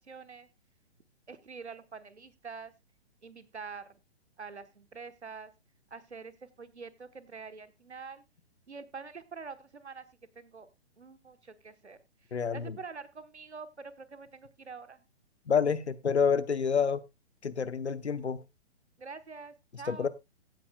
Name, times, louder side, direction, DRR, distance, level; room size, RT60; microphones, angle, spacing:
voice 1, 0.1-0.5 1.3-2.7 3.2-3.9 4.4-5.5 5.9-8.2 8.7-10.1 10.3-10.7 11.0-12.0 12.5-15.0 19.0-20.1, right 5 dB, 85° right, 1.2 m, -45 dB
voice 2, 12.3-12.8 15.5-17.0 17.4-18.4 19.9-20.1, left 6 dB, 80° left, 0.9 m, -28 dB
16.0 x 8.4 x 2.3 m
figure-of-eight pair, 125°, 33 cm